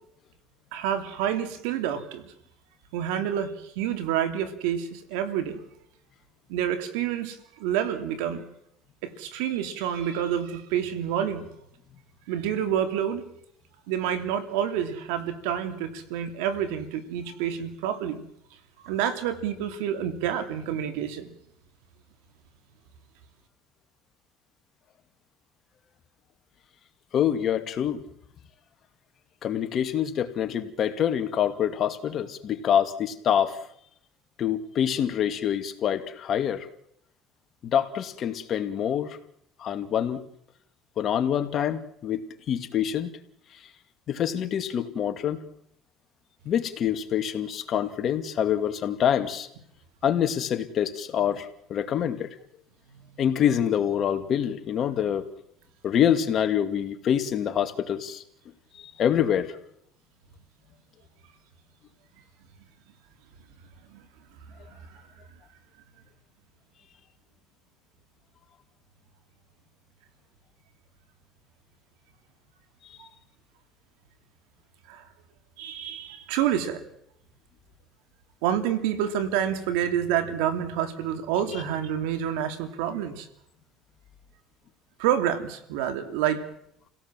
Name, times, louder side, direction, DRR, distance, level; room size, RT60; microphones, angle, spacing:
voice 1, 0.7-2.3 2.9-5.6 6.5-8.4 9.0-11.5 12.3-13.3 13.9-18.2 18.8-21.3 63.9-64.0 64.7-64.8 73.0-73.1 74.9-75.0 75.6-76.8 78.4-83.3 85.0-86.4, right 9 dB, 90° right, 8 dB, 2.9 m, -28 dB
voice 2, 27.1-28.0 29.4-33.6 34.4-36.7 37.6-39.2 39.6-40.2 41.0-43.1 44.1-45.4 46.5-49.5 50.0-52.3 53.2-55.2 55.8-58.2 58.8-59.5, left 9 dB, 50° left, 8 dB, 2.3 m, -26 dB
29.0 x 17.0 x 7.6 m, 0.75 s
cardioid pair, 110°, 0 cm